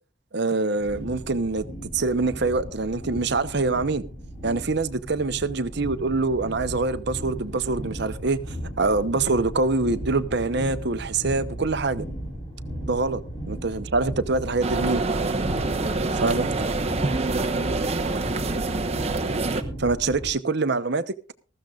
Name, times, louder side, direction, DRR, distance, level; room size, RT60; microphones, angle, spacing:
voice 1, 0.3-1.6 1.9-4.0 4.4-8.4 8.8-12.0 12.8-13.2 13.5-15.1 16.2-16.5 19.8-21.1, right 3 dB, 60° right, 0.9 m, -25 dB
sound 1, 0.7-20.3, right 1 dB, 20° left, 6.3 m, -36 dB
sound 2, 14.6-19.6, right 3 dB, 35° right, 1.1 m, -26 dB
19.5 x 14.5 x 2.4 m
head